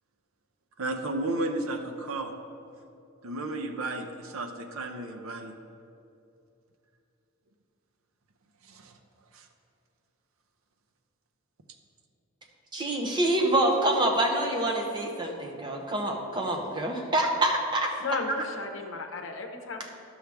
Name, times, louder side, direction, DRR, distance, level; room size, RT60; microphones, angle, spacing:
voice 1, 0.8-2.3 3.2-5.5 8.6-9.0 9.3-9.5, right 2 dB, 80° right, 6 dB, 0.7 m, -33 dB
voice 2, 12.7-17.9, right 1 dB, 20° right, 1 dB, 0.8 m, -26 dB
voice 3, 18.0-19.9, left 3 dB, 65° left, 5 dB, 0.8 m, -34 dB
11.5 x 6.3 x 3.5 m, 2.7 s
head